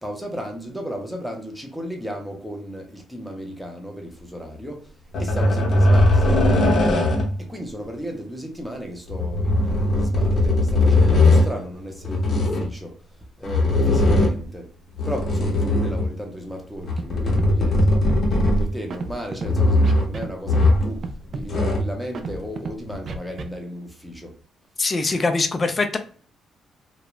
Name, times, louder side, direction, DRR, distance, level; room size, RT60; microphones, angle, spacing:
voice 1, 0.0-4.9 5.2-7.1 7.4-13.0 13.4-14.7 15.0-21.0 21.3-24.3, equal, ahead, 0.8 m, -35 dB
sound 1, 5.1-7.4 9.1-11.5 12.0-12.7 13.4-14.5 14.9-16.2 16.8-18.9 19.4-20.1 20.5-21.0 21.3-22.0 22.9-23.0, left 1 dB, 50° left, 0.8 m, -19 dB
Scratching (performance technique), 17.0-17.1 17.3-17.5 17.8-18.2 18.9-19.5 19.8-20.3 20.5-20.8 21.0-21.4 22.1-22.7 23.1-23.4, right 4 dB, 55° right, 0.4 m, -31 dB
voice 2, 24.8-26.0, left 3 dB, 30° left, 0.5 m, -22 dB
2.4 x 2.0 x 3.0 m
cardioid pair, 90°, 0 cm